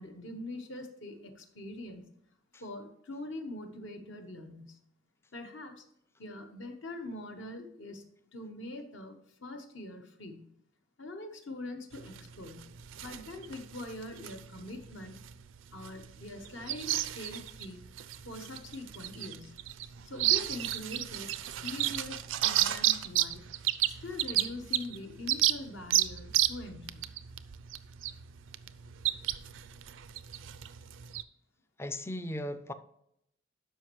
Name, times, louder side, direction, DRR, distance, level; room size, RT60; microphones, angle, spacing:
voice 1, 0.0-2.1 2.6-4.8 5.3-5.9 6.2-8.0 8.3-10.5 11.0-12.7 13.0-15.2 15.7-17.8 18.2-19.5 20.0-23.4 23.9-27.1, left 2 dB, 65° left, 5 dB, 1.1 m, -43 dB
sound 1, 11.9-31.2, right 13 dB, 70° right, 0.4 m, -33 dB
voice 2, 31.8-32.7, left 1 dB, 15° left, 11 dB, 0.4 m, -37 dB
12.0 x 5.3 x 3.1 m, 0.76 s
head